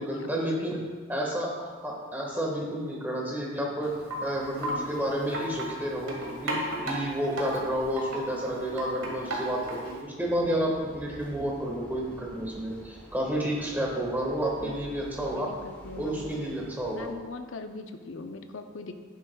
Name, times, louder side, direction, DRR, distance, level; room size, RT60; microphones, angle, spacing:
voice 1, 0.0-3.9 4.2-15.5 16.0-17.1, right 1 dB, 10° right, -2 dB, 1.5 m, -31 dB
Wind chime, 3.8-10.0, right 1 dB, 75° right, 1.7 m, -35 dB
sound 1, 10.2-17.1, equal, 10° left, 1.1 m, -48 dB
voice 2, 14.6-16.5 16.9-18.9, left 3 dB, 75° left, 7 dB, 0.6 m, -42 dB
11.0 x 9.4 x 2.3 m, 1.5 s
head